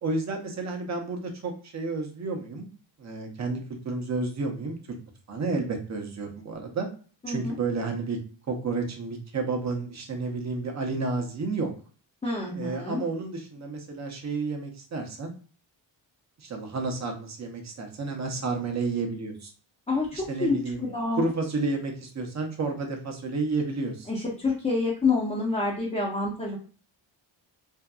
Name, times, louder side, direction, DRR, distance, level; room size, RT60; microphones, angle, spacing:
voice 1, 0.0-2.7 3.0-4.8 5.3-6.9 7.3-8.2 8.5-11.7 12.5-15.3 16.4-19.5 20.1-20.9 21.2-24.1, right 3 dB, 35° right, 3 dB, 0.6 m, -31 dB
voice 2, 7.2-7.5 12.2-13.0 19.9-21.2 24.1-26.6, left 3 dB, 15° left, -5 dB, 0.5 m, -27 dB
2.6 x 2.2 x 2.2 m, 0.40 s
cardioid pair, 95°, 48 cm